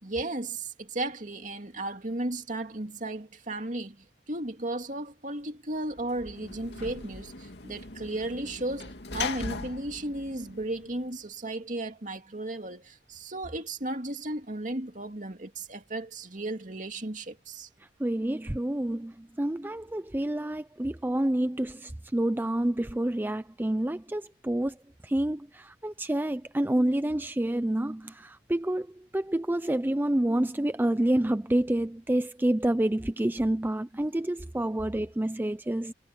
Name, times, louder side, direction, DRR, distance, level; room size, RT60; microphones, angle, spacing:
voice 1, 0.0-17.7, right 2 dB, 45° right, 2.5 m, -35 dB
Sliding door / Slam, 5.9-11.3, left 4 dB, 75° left, 2.4 m, -40 dB
voice 2, 18.0-24.8 25.0-35.9, right 1 dB, 10° right, 0.5 m, -28 dB
head